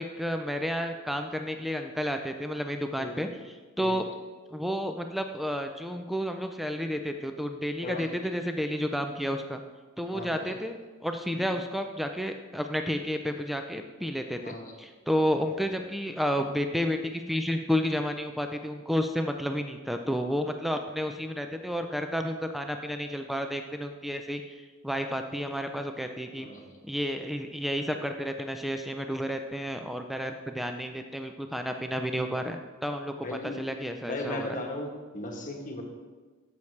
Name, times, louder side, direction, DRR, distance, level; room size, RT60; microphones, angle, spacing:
voice 1, 0.0-4.1 4.5-9.6 10.0-26.5 26.9-34.6, equal, ahead, 5 dB, 0.3 m, -31 dB
voice 2, 10.1-10.5 11.3-11.5 14.4-14.7 26.4-26.6 33.2-33.6 34.0-35.8, left 1 dB, 40° left, 2 dB, 1.1 m, -37 dB
9.4 x 7.0 x 3.2 m, 1.3 s
head